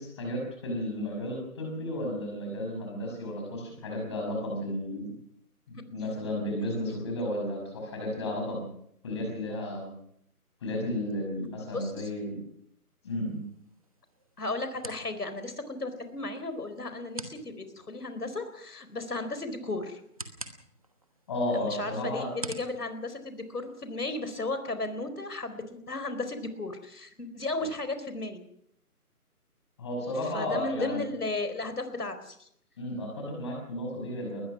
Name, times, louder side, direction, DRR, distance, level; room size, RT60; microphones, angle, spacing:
voice 1, 0.0-5.1 5.7-8.7 9.0-9.9 10.6-12.4 13.0-13.4 21.3-22.3 29.8-31.0 32.8-34.4, left 1 dB, 20° left, 1 dB, 5.9 m, -33 dB
voice 2, 11.6-12.1 14.4-20.0 21.5-28.4 30.3-32.5, left 2 dB, 85° left, 10 dB, 4.5 m, -35 dB
sound 1, 13.0-24.0, right 2 dB, 25° right, 1.2 m, -48 dB
21.0 x 20.5 x 6.1 m, 0.70 s
figure-of-eight pair, 175°, 45 cm